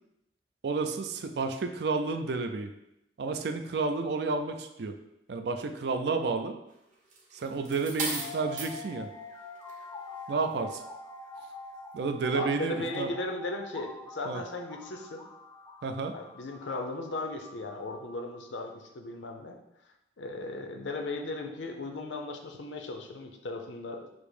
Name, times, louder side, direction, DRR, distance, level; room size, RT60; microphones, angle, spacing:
voice 1, 0.6-2.7 3.2-4.9 5.3-6.6 7.3-9.1 10.3-10.8 11.9-13.1 14.3-14.4 15.8-16.1, right 4 dB, 60° right, 7 dB, 0.4 m, -31 dB
sound 1, 7.1-8.8 9.5-9.8, right 3 dB, 40° right, 0.9 m, -35 dB
sound 2, 8.0-19.0, left 2 dB, 15° left, 0.5 m, -46 dB
voice 2, 12.3-15.2 16.1-19.5 20.2-24.1, left 2 dB, 85° left, 4 dB, 0.6 m, -37 dB
5.1 x 2.0 x 4.8 m, 0.87 s
head